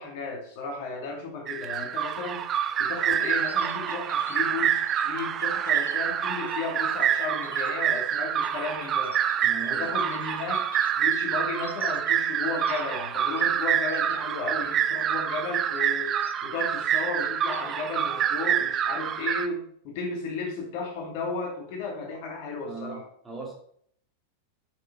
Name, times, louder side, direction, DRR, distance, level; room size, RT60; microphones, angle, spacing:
voice 1, 0.0-2.4 2.8-9.1 9.6-10.7 11.0-23.0, left 4 dB, 45° left, 1 dB, 2.5 m, -34 dB
sound 1, 1.5-19.5, right 9 dB, 30° right, 0.6 m, -27 dB
sound 2, 3.0-6.0 6.5-6.7 7.0-13.4 13.7-14.2 14.6-15.0 15.4-16.6 16.9-17.9, left 5 dB, 70° left, 1.0 m, -48 dB
voice 2, 9.4-9.9 22.6-23.5, right 4 dB, 10° right, -2 dB, 2.5 m, -39 dB
8.1 x 6.1 x 4.5 m, 0.63 s
figure-of-eight pair, 90°, 0 cm